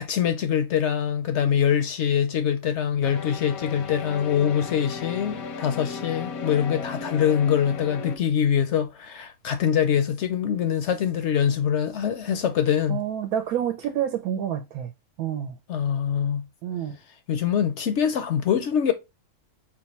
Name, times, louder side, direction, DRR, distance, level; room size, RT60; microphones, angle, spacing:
voice 1, 0.0-13.0 15.7-16.4 17.3-18.9, left 8 dB, 65° left, 0.7 m, -24 dB
sound 1, 3.0-8.2, left 5 dB, 80° left, 1.1 m, -35 dB
voice 2, 12.9-14.9 15.2-15.6 16.6-17.0, right 10 dB, 90° right, 1.1 m, -28 dB
4.4 x 2.3 x 4.1 m
omnidirectional pair, 1.5 m